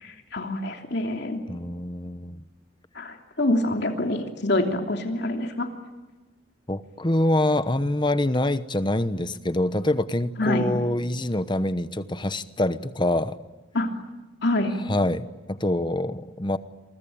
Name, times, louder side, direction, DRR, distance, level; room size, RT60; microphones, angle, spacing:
voice 1, 0.0-1.4 2.9-5.7 10.4-10.6 13.7-13.9 14.4-14.7, left 1 dB, 55° left, 4 dB, 3.0 m, -26 dB
voice 2, 1.5-2.4 6.7-13.4 14.8-16.6, left 1 dB, 20° left, 13 dB, 1.0 m, -25 dB
28.5 x 24.0 x 8.8 m, 1.2 s
head